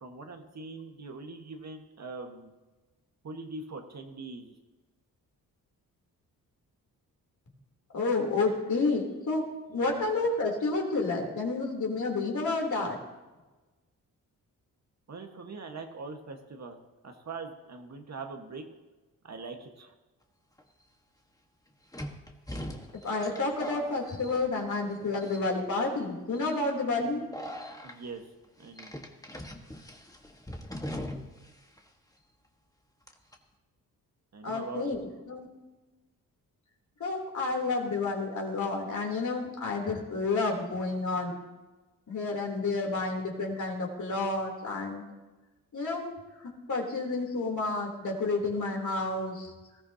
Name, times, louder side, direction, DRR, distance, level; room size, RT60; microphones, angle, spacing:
voice 1, 0.0-2.5 3.2-4.5 9.7-10.0 15.1-16.8 17.0-18.6 19.2-19.9 27.8-28.3 28.6-28.9 34.3-35.0, right 3 dB, 45° right, 4 dB, 1.6 m, -42 dB
voice 2, 7.9-13.0 23.0-27.2 34.4-35.5 37.0-41.3 42.1-45.0 45.7-49.5, left 3 dB, 55° left, 0 dB, 3.4 m, -30 dB
sound 1, 20.6-20.7 21.9-24.9 25.2-25.7 26.3-26.6 27.3-28.0 28.8-31.5 31.8-31.9 33.1-33.4, left 1 dB, 10° left, 1.5 m, -41 dB
19.0 x 13.5 x 2.9 m, 1.2 s
cardioid pair, 65°, 36 cm